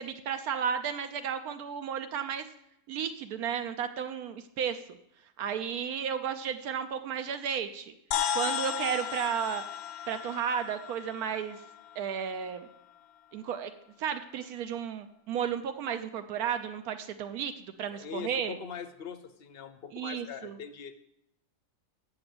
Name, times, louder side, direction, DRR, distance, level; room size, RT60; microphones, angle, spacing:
voice 1, 0.0-2.5 2.9-5.0 5.4-7.9 8.3-9.6 10.1-11.6 12.0-12.7 13.3-13.7 14.0-18.6 19.9-20.6, right 8 dB, 80° right, 8 dB, 1.1 m, -33 dB
sound 1, 8.1-12.7, left 9 dB, 90° left, 1.1 m, -35 dB
voice 2, 17.9-20.9, left 7 dB, 60° left, 11 dB, 0.6 m, -42 dB
7.2 x 6.8 x 7.8 m, 0.80 s
omnidirectional pair, 1.6 m